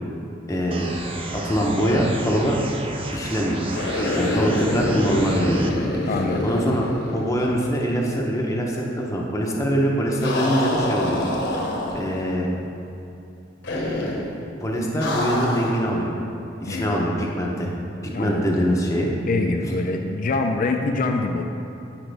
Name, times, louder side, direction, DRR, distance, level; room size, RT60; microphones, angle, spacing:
voice 1, 0.5-0.9 1.3-2.6 3.1-3.6 4.1-5.6 6.4-11.2 11.9-12.5 14.6-16.1 16.6-17.7 18.0-19.1, equal, 15° left, -2 dB, 0.7 m, -23 dB
sound 1, 0.7-5.7, right 2 dB, 30° right, 0.5 m, -33 dB
sound 2, 3.7-7.8 8.1-8.2 10.2-12.2 13.6-14.3 15.0-15.9, left 1 dB, 65° left, 1.1 m, -26 dB
voice 2, 6.1-6.5 16.7-17.0 18.1-18.4 19.3-21.4, left 3 dB, 45° left, 4 dB, 0.4 m, -24 dB
10.0 x 4.8 x 3.4 m, 2.8 s
head